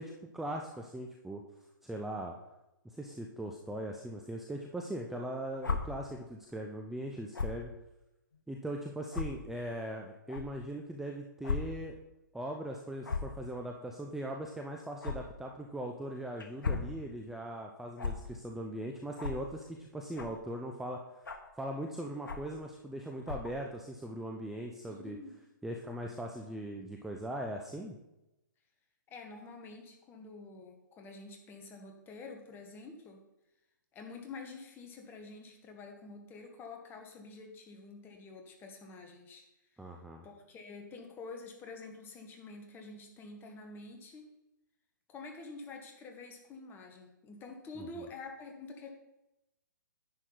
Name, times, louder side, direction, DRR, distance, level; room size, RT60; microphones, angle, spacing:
voice 1, 0.0-1.4 1.8-2.3 2.8-7.7 8.5-12.0 12.3-21.3 21.6-25.2 25.6-28.0 39.8-40.3 47.8-47.9, right 1 dB, 5° right, 1 dB, 0.6 m, -40 dB
sound 1, 5.6-5.8 7.3-7.6 8.3-8.4 9.1-9.2 10.3-10.4 11.4-11.6 11.9-12.0 13.0-13.3 15.0-15.2 16.4-16.9 18.0-18.1 19.2-19.4 20.1-20.4 21.2-21.5 22.3-22.5 23.2-23.5, left 5 dB, 75° left, 1.4 m, -34 dB
voice 2, 24.9-25.4 29.1-33.2 33.9-39.4 39.7-39.9 40.2-44.3 45.1-48.9, left 3 dB, 20° left, 3 dB, 1.4 m, -48 dB
10.0 x 6.3 x 4.0 m, 0.94 s
hypercardioid pair, 135°, 11 cm